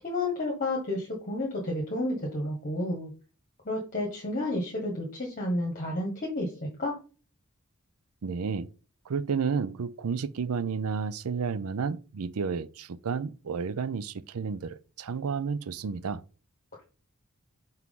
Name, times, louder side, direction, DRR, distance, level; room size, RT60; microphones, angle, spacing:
voice 1, 0.0-3.1 3.6-6.5 6.8-7.0, left 1 dB, 35° left, 1.4 m, -31 dB
voice 2, 8.2-8.7 9.1-16.2, right 5 dB, 75° right, 0.5 m, -31 dB
6.0 x 4.4 x 3.7 m
head